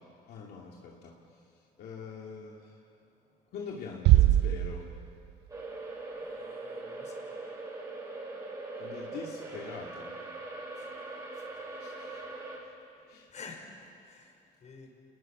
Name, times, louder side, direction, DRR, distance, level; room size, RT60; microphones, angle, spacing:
voice 1, 0.3-1.1 1.8-2.8 3.5-4.9 8.8-10.1 11.8-12.2 12.6-12.7 13.1-13.3, left 5 dB, 70° left, -2 dB, 2.4 m, -43 dB
Bass drum, 4.1-5.5, right 14 dB, 75° right, 0.5 m, -23 dB
sound 1, 5.5-12.6, right 2 dB, 20° right, 6.2 m, -41 dB
voice 2, 6.1-7.3 10.7-10.9 11.3-11.6 13.3-14.9, left 4 dB, 45° left, 3 dB, 4.6 m, -50 dB
29.0 x 20.0 x 6.1 m, 2.4 s
cardioid pair, 110°, 17 cm